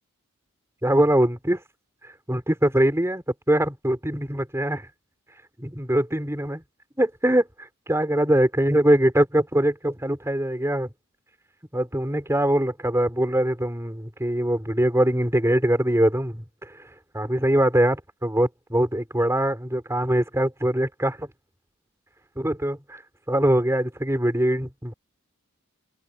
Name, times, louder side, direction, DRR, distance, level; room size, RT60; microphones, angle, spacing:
voice 1, 0.8-1.6 2.3-4.9 5.6-6.6 7.0-10.9 11.7-16.9 17.1-21.3 22.4-23.0 23.3-24.9, right 1 dB, 15° right, 5.7 m, -23 dB
open air
head